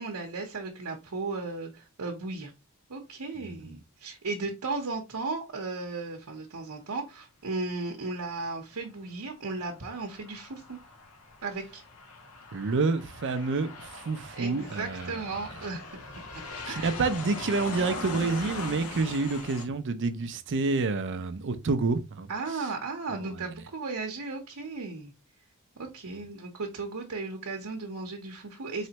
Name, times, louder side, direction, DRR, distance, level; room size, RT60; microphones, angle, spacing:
voice 1, 0.0-2.5 2.9-10.8 11.4-11.8 14.3-16.9 22.3-25.1 25.8-28.9, right 3 dB, 85° right, 0.9 m, -36 dB
Aircraft, 9.4-19.7, left 3 dB, 80° left, 0.9 m, -41 dB
voice 2, 12.5-15.1 16.7-22.3, right 3 dB, 55° right, 0.5 m, -28 dB
4.3 x 3.2 x 2.9 m
head